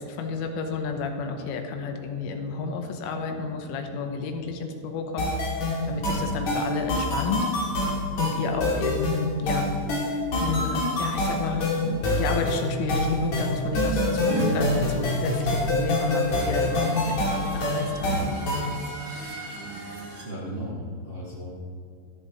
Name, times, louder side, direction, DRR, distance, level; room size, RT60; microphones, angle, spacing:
voice 1, 0.0-5.3 5.6-7.5 8.2-9.7 10.1-18.6, left 4 dB, 85° left, 4 dB, 3.4 m, -31 dB
sound 1, 5.2-18.8, left 1 dB, 45° left, 2.7 m, -26 dB
voice 2, 5.9-6.4 19.9-21.5, equal, 75° right, -7 dB, 1.0 m, -37 dB
sound 2, 14.3-14.5 15.9-20.2, right 2 dB, 35° right, 2.0 m, -36 dB
13.5 x 13.0 x 3.1 m, 2.5 s
omnidirectional pair, 5.8 m